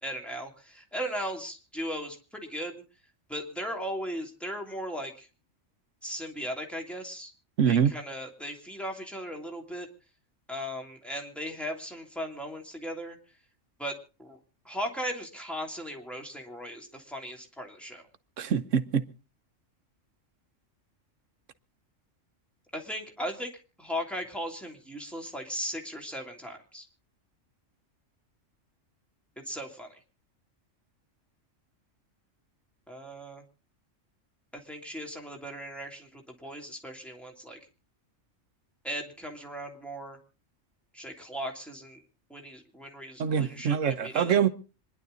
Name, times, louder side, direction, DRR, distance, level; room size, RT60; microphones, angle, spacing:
voice 1, 0.0-2.8 3.3-5.3 6.0-7.3 7.6-9.9 10.5-13.2 13.8-14.4 14.6-18.1 22.7-23.5 23.8-26.9 29.4-30.0 32.9-33.4 34.5-37.6 38.8-40.2 40.9-42.0 42.3-44.4, equal, ahead, 3.0 m, -37 dB
voice 2, 7.6-7.9 18.4-19.1 43.2-44.5, right 7 dB, 75° right, 1.3 m, -24 dB
26.0 x 11.0 x 3.9 m
omnidirectional pair, 1.3 m